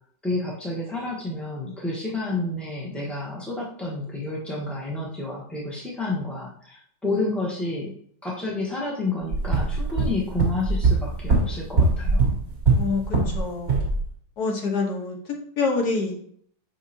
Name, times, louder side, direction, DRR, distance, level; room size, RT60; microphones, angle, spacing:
voice 1, 0.2-7.9 8.2-12.3, left 2 dB, ahead, -4 dB, 0.6 m, -30 dB
sound 1, 9.3-13.4 13.7-14.0, right 3 dB, 35° right, 2.5 m, -21 dB
voice 2, 12.8-13.9 14.4-16.2, left 4 dB, 60° left, 1 dB, 1.7 m, -27 dB
7.2 x 5.7 x 2.8 m, 0.63 s
omnidirectional pair, 2.1 m